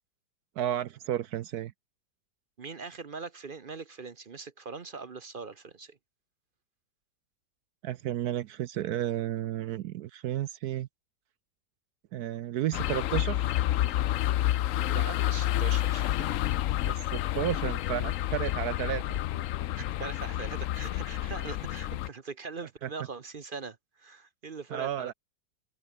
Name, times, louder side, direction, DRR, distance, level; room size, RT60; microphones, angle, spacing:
voice 1, 0.6-1.7 7.8-10.9 12.1-13.5 16.9-19.2 22.8-22.9 24.7-25.1, right 12 dB, 70° right, 1.0 m, -32 dB
voice 2, 2.6-6.0 14.7-16.3 19.8-25.1, right 4 dB, 40° right, 0.8 m, -41 dB
sound 1, 12.7-22.1, left 13 dB, 85° left, 0.7 m, -29 dB
omnidirectional pair, 2.0 m